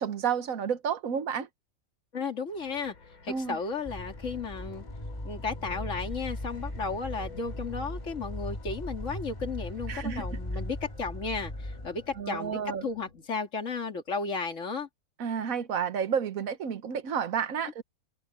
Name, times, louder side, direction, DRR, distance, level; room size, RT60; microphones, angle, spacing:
voice 1, 0.0-1.5 3.3-3.6 9.9-10.4 12.2-12.9 15.2-17.8, right 7 dB, 70° right, 1.5 m, -31 dB
voice 2, 2.1-2.9 3.2-4.8 5.2-14.9, left 4 dB, 60° left, 2.8 m, -34 dB
sound 1, 2.5-13.3, left 3 dB, 75° left, 3.2 m, -52 dB
sound 2, 3.9-12.2, left 1 dB, 20° left, 2.6 m, -38 dB
omnidirectional pair, 1.5 m